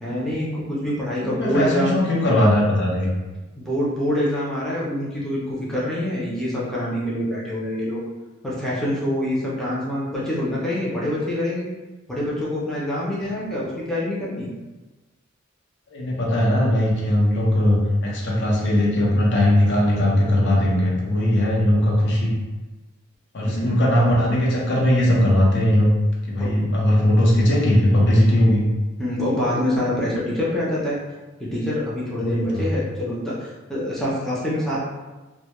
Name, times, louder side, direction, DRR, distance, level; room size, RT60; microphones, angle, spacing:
voice 1, 0.0-2.0 3.6-8.0 8.4-11.7 12.1-14.5 23.4-23.8 26.4-26.7 29.0-31.0 31.4-34.8, left 1 dB, ahead, -8 dB, 0.5 m, -25 dB
voice 2, 1.2-3.1 15.9-22.3 23.3-25.9 26.3-28.6 32.2-32.7, left 1 dB, 60° left, -4 dB, 0.6 m, -19 dB
2.2 x 2.1 x 2.9 m, 1.2 s
head